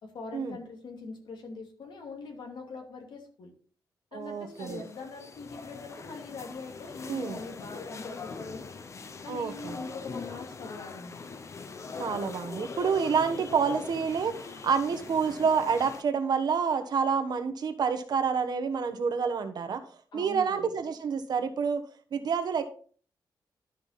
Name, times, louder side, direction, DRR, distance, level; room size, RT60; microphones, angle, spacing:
voice 1, 0.0-3.5 4.1-8.7 9.2-11.2 20.1-20.7, left 4 dB, 80° left, 2 dB, 2.6 m, -43 dB
voice 2, 4.1-4.8 7.1-7.4 9.3-9.8 12.0-19.8 20.1-21.8 22.1-22.6, right 6 dB, 60° right, 9 dB, 1.2 m, -28 dB
sound 1, 4.5-16.0, left 4 dB, 40° left, 0.8 m, -42 dB
12.0 x 5.5 x 4.2 m, 0.43 s
wide cardioid pair, 180°, 8 cm